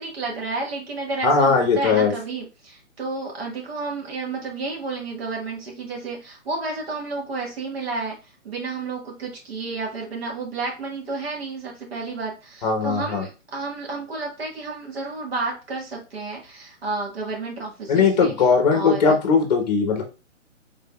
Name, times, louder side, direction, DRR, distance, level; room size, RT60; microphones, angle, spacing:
voice 1, 0.0-8.1 8.4-19.2, right 3 dB, 50° right, 0 dB, 1.6 m, -31 dB
voice 2, 1.2-2.1 12.6-13.3 17.9-20.0, left 5 dB, 35° left, 4 dB, 1.0 m, -19 dB
3.8 x 3.6 x 2.3 m, 0.30 s
hypercardioid pair, 160°, 38 cm